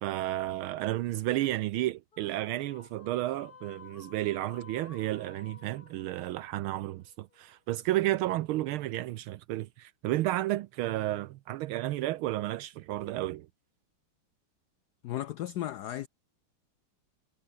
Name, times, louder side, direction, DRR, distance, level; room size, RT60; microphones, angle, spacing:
voice 1, 0.0-13.5, right 15 dB, 80° right, 1.5 m, -32 dB
sound 1, 2.1-7.5, left 5 dB, 35° left, 1.0 m, -54 dB
voice 2, 15.0-16.1, left 13 dB, 75° left, 0.9 m, -35 dB
omnidirectional pair, 2.4 m